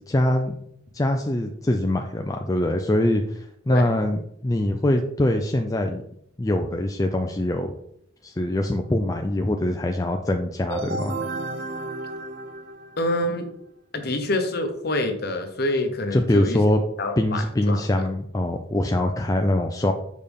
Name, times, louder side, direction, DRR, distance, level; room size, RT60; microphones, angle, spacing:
voice 1, 0.1-0.5 0.9-6.0 6.4-7.7 8.2-11.2 16.1-16.8 17.2-19.9, left 1 dB, 20° left, 4 dB, 0.4 m, -23 dB
sound 1, 10.7-13.4, right 2 dB, 55° right, 0.7 m, -32 dB
voice 2, 13.0-13.5 13.9-16.6 17.0-17.8, left 1 dB, 55° left, 6 dB, 1.0 m, -26 dB
6.5 x 5.1 x 3.6 m, 0.71 s
head